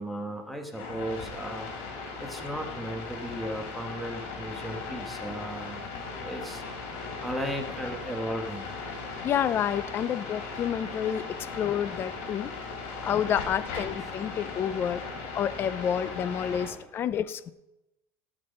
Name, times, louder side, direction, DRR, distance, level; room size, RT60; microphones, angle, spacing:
voice 1, 0.0-1.7 2.2-5.8 6.2-6.6 7.2-8.7, equal, ahead, 3 dB, 1.4 m, -35 dB
sound 1, 0.7-16.7, left 4 dB, 75° left, 4.6 m, -38 dB
voice 2, 9.2-12.5 13.0-15.0 15.3-17.5, left 9 dB, 30° left, 16 dB, 0.4 m, -29 dB
18.0 x 6.2 x 5.4 m, 0.95 s
cardioid pair, 150°, 8 cm